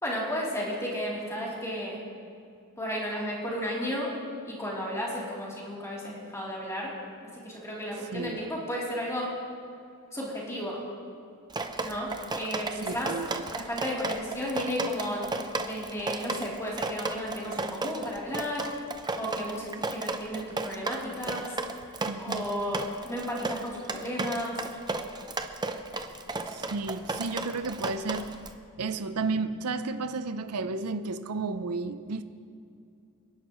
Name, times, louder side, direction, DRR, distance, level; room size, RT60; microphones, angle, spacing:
voice 1, 0.0-2.0 2.8-4.1 4.4-6.9 7.3-9.3 10.1-10.8 11.8-13.1 13.5-15.3 15.6-18.7 19.2-21.5 22.2-24.6, equal, 15° left, -5 dB, 3.2 m, -33 dB
Drip, 11.5-28.5, right 3 dB, 20° right, 0.6 m, -34 dB
voice 2, 12.8-13.4 22.1-22.5 26.5-28.3 28.8-32.2, right 3 dB, 85° right, 10 dB, 0.6 m, -32 dB
27.0 x 11.0 x 3.1 m, 2.5 s
head